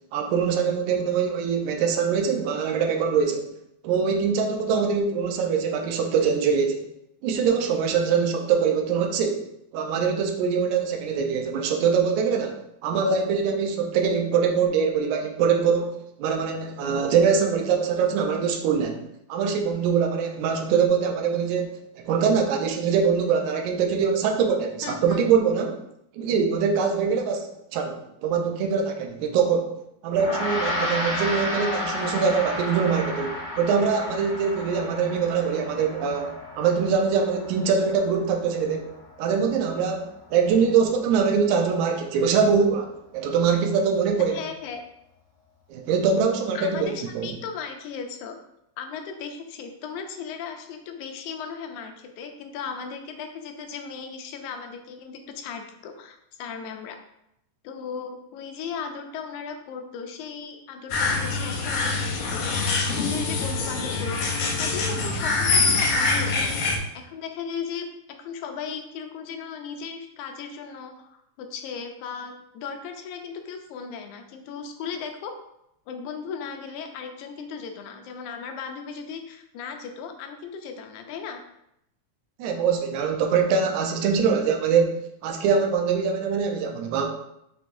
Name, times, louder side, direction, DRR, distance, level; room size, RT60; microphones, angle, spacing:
voice 1, 0.1-3.5 3.8-6.9 7.2-9.5 9.7-12.5 12.8-21.8 22.1-25.8 26.1-29.7 30.0-38.9 39.2-44.4 45.7-47.3 82.4-87.1, right 6 dB, 80° right, 3 dB, 2.0 m, -23 dB
voice 2, 24.8-25.2 44.2-44.8 46.5-48.4 48.8-57.0 57.6-67.9 68.2-75.3 75.9-81.4, left 6 dB, 90° left, 5 dB, 2.0 m, -36 dB
Gong, 30.1-39.7, left 1 dB, 40° left, 2.1 m, -32 dB
sound 1, 60.9-66.8, left 3 dB, 70° left, 1.6 m, -24 dB
6.3 x 3.2 x 2.5 m, 0.80 s
omnidirectional pair, 3.4 m